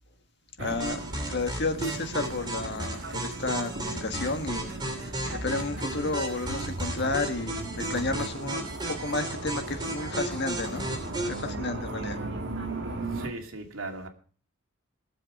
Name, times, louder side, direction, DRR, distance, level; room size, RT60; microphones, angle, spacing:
voice 1, 0.6-1.0 1.3-10.8 11.2-12.2, left 3 dB, 55° left, 1.6 m, -32 dB
sound 1, 0.6-13.3, right 2 dB, 65° right, 2.2 m, -37 dB
sound 2, 0.8-11.4, right 2 dB, 20° right, 3.1 m, -35 dB
voice 2, 13.1-14.1, right 2 dB, 85° right, 2.6 m, -38 dB
19.5 x 7.4 x 5.3 m
head